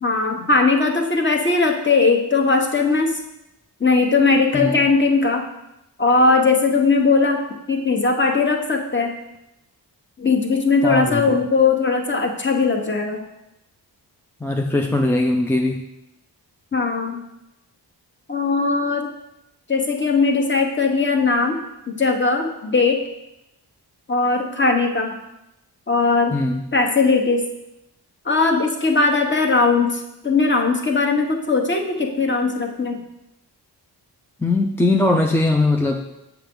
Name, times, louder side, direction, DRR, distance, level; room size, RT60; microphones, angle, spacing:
voice 1, 0.0-3.1 3.8-5.4 6.0-7.4 7.7-9.1 10.2-13.2 16.7-17.2 18.3-19.1 19.7-21.6 22.0-23.0 24.1-25.1 25.9-26.3 26.7-27.4 28.2-33.0, left 4 dB, 25° left, 2 dB, 1.0 m, -19 dB
voice 2, 10.8-11.4 14.4-15.8 26.3-26.7 34.4-36.1, left 2 dB, 5° left, 2 dB, 0.4 m, -20 dB
7.2 x 7.0 x 3.7 m, 0.89 s
wide cardioid pair, 120°, 41 cm